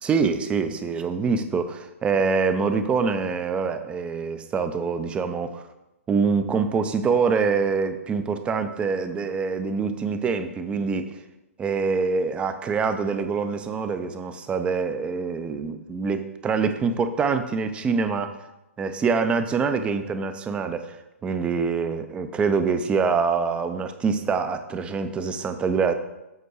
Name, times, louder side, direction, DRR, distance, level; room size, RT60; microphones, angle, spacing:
voice 1, 0.0-5.6 6.1-11.1 11.6-18.4 18.8-21.0 21.2-25.9, right 5 dB, 15° right, 9 dB, 0.6 m, -25 dB
8.0 x 4.4 x 6.4 m, 0.95 s
hypercardioid pair, 130°, 8 cm